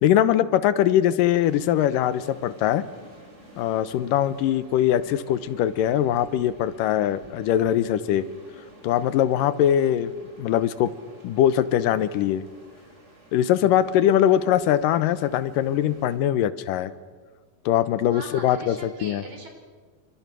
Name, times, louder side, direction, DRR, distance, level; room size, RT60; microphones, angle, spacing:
voice 1, 0.0-2.8 3.6-8.2 8.8-10.1 10.4-10.9 11.2-12.4 13.3-16.9 17.7-19.2, left 11 dB, 90° left, 14 dB, 2.6 m, -22 dB
sound 1, 1.2-16.2, right 1 dB, 20° right, 4.2 m, -51 dB
voice 2, 18.1-19.5, right 2 dB, 60° right, 3 dB, 5.9 m, -40 dB
28.5 x 25.5 x 6.2 m, 1.5 s
omnidirectional pair, 3.8 m